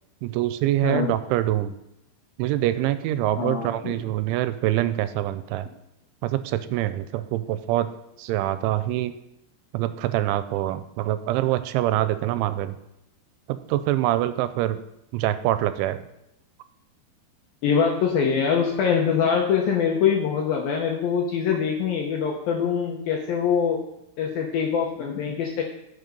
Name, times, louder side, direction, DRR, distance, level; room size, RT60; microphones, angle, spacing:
voice 1, 0.2-1.7 2.4-5.7 6.2-7.9 8.2-9.1 9.7-12.8 13.5-14.8 15.1-16.0, right 14 dB, 85° right, 12 dB, 3.0 m, -25 dB
voice 2, 0.8-1.1 3.4-3.9 17.6-23.8 24.2-25.6, left 7 dB, 75° left, 1 dB, 2.2 m, -23 dB
13.0 x 6.7 x 5.3 m, 0.85 s
omnidirectional pair, 5.4 m